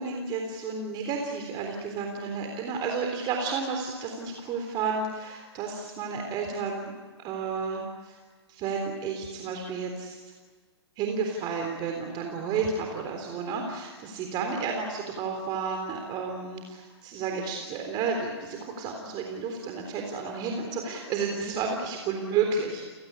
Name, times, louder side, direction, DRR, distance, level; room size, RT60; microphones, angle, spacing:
voice 1, 0.0-8.2 8.5-10.2 11.0-22.8, right 5 dB, 30° right, 3 dB, 3.7 m, -31 dB
30.0 x 18.0 x 9.9 m, 1.5 s
hypercardioid pair, 125°, 14 cm